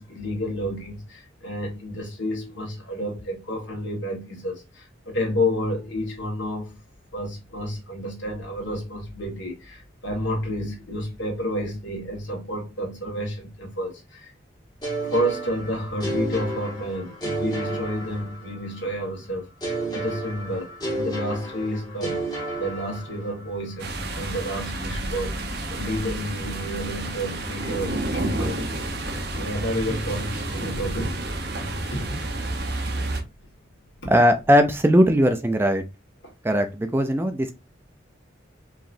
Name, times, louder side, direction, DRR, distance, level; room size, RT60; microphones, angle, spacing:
voice 1, 0.0-6.8 7.1-14.3 15.0-19.5 19.9-25.4 25.7-28.7 29.4-31.2 31.6-32.2 32.4-32.6 33.0-33.1 34.0-34.1, equal, 70° left, 1.8 m, -30 dB
sound 1, 14.8-18.7 19.6-23.5, right 2 dB, 20° left, 1.7 m, -31 dB
Thunderstorm, 23.7-35.3, left 1 dB, 90° left, 0.5 m, -42 dB
sound 2, 23.8-33.2, right 2 dB, 55° right, 0.9 m, -30 dB
voice 2, 34.1-35.8 36.4-37.5, equal, 10° right, 0.4 m, -19 dB
4.8 x 3.0 x 2.6 m
head